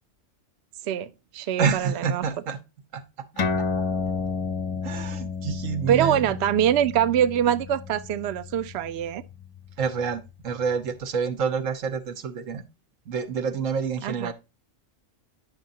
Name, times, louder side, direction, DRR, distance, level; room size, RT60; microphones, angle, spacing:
voice 1, 0.8-2.3 5.9-9.2 14.0-14.3, right 10 dB, 65° right, 0.8 m, -24 dB
voice 2, 1.6-2.6 2.9-3.0 4.8-6.2 9.8-12.6 13.1-14.3, right 6 dB, 85° right, 1.4 m, -28 dB
sound 1, 3.4-10.3, left 4 dB, 40° left, 0.5 m, -32 dB
9.8 x 6.6 x 2.7 m
omnidirectional pair, 1.3 m